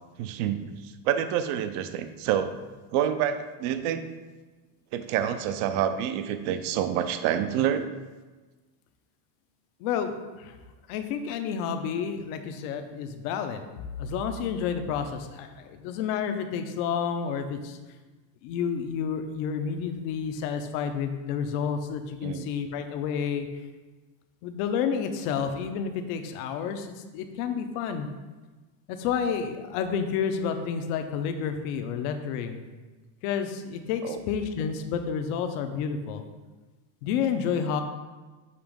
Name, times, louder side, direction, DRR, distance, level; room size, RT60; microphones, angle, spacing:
voice 1, 0.2-2.5 2.9-4.0 4.9-7.9 22.2-22.5 34.0-34.2, right 9 dB, 50° right, 10 dB, 0.5 m, -27 dB
voice 2, 9.8-10.1 10.4-10.5 10.9-17.8 18.4-23.5 24.4-28.1 28.9-32.6 33.2-36.2 37.0-37.8, left 7 dB, 65° left, 7 dB, 0.8 m, -30 dB
6.8 x 3.0 x 5.1 m, 1.3 s
cardioid pair, 165°, 48 cm